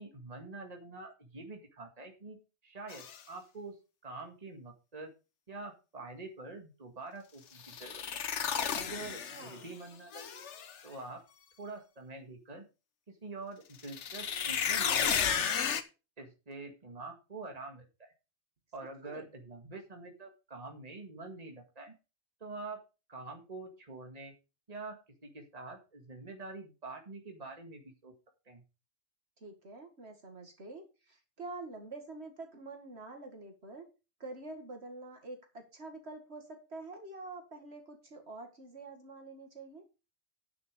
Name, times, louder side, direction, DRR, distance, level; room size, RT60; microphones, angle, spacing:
voice 1, 0.0-2.4 2.6-3.7 4.0-5.1 5.5-8.0 8.7-10.4 10.8-11.2 11.6-12.6 13.1-15.3 16.2-18.1 18.7-21.9 22.4-22.8 23.1-24.3 24.7-28.1 28.5-28.6, right 3 dB, 35° right, 3 dB, 2.0 m, -46 dB
sound 1, 2.9-3.2 7.6-9.7 10.1-10.8 13.8-15.8, left 7 dB, 85° left, 1.3 m, -33 dB
voice 2, 9.3-9.7 19.0-19.3 29.4-33.9 34.2-39.8, right 2 dB, 65° right, 4 dB, 2.4 m, -46 dB
9.8 x 6.8 x 5.3 m, 0.30 s
omnidirectional pair, 1.2 m